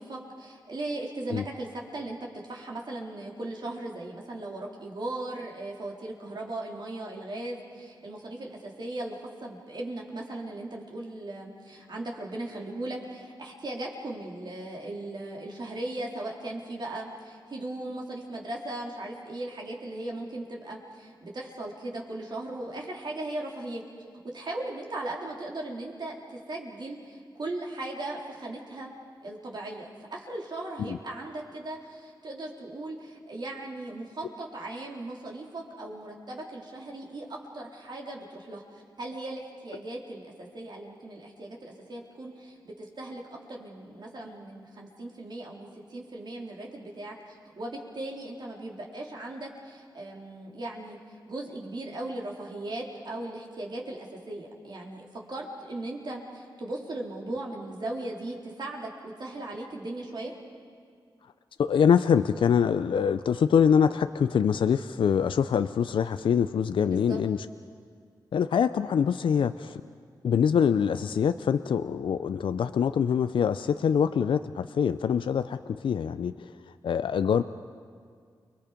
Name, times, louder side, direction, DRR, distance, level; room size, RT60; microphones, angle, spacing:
voice 1, 0.0-2.2 2.5-23.8 24.2-28.9 29.2-38.6 39.0-47.1 47.6-51.0 51.3-60.3 66.9-67.2, right 2 dB, 60° right, -2 dB, 3.8 m, -38 dB
voice 2, 61.6-67.4 68.3-69.8 70.2-76.5 76.8-77.4, left 7 dB, 75° left, 11 dB, 0.5 m, -24 dB
29.5 x 21.5 x 5.2 m, 2.1 s
cardioid pair, 55°, 9 cm